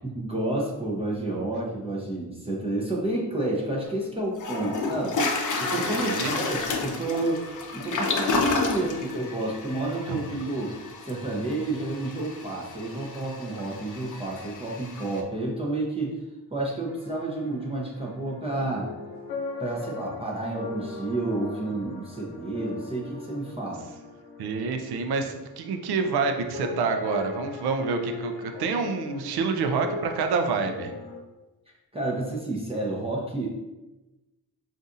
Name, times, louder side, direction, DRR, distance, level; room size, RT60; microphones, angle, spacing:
voice 1, 0.0-5.2 5.6-7.4 7.7-10.8 11.0-16.2 16.5-18.9 19.6-23.9 31.9-33.6, right 2 dB, 15° right, -3 dB, 0.6 m, -30 dB
Toilet flush, 3.9-4.0 4.4-15.2, left 3 dB, 50° left, 0.6 m, -31 dB
voice 2, 5.8-6.4 10.1-10.2 24.4-30.9, right 4 dB, 70° right, 6 dB, 0.6 m, -27 dB
sound 1, 16.9-26.3 26.5-31.2, left 3 dB, 85° left, 0.7 m, -39 dB
4.0 x 2.6 x 2.5 m, 1.1 s
cardioid pair, 85°, 39 cm